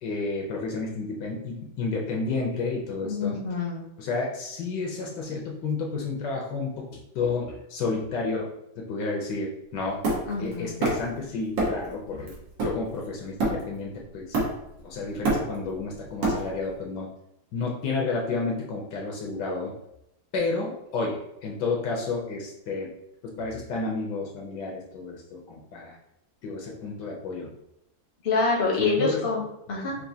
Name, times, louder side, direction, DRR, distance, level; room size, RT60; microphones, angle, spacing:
voice 1, 0.0-3.4 4.0-10.0 10.4-12.3 12.6-14.4 14.8-17.1 17.5-19.7 20.3-22.9 23.2-26.0 26.4-27.5 28.8-29.2, left 3 dB, 70° left, 0 dB, 1.2 m, -31 dB
voice 2, 3.0-3.8 10.3-10.7 28.2-29.9, left 3 dB, 45° left, -2 dB, 0.8 m, -26 dB
Hammer, 10.0-11.2 11.6-11.9 12.3-13.9 14.3-14.8 15.1-16.7, right 2 dB, 75° right, 1.9 m, -27 dB
6.0 x 2.5 x 2.7 m, 0.83 s
omnidirectional pair, 2.1 m